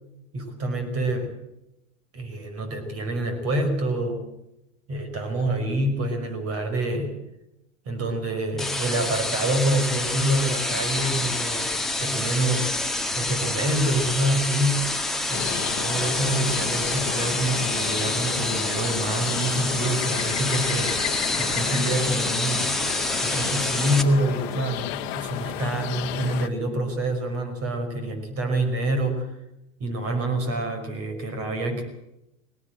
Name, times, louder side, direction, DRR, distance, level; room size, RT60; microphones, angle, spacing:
voice 1, 0.3-1.3 2.1-4.3 4.9-7.2 7.9-12.7 13.2-14.9 15.3-22.8 23.2-29.3 29.8-31.8, right 1 dB, 35° right, 7 dB, 5.4 m, -27 dB
sound 1, 8.6-24.0, left 2 dB, ahead, 1.7 m, -27 dB
sound 2, 15.3-26.5, left 13 dB, 50° left, 1.5 m, -33 dB
19.5 x 17.5 x 7.7 m, 0.87 s
hypercardioid pair, 110°, 41 cm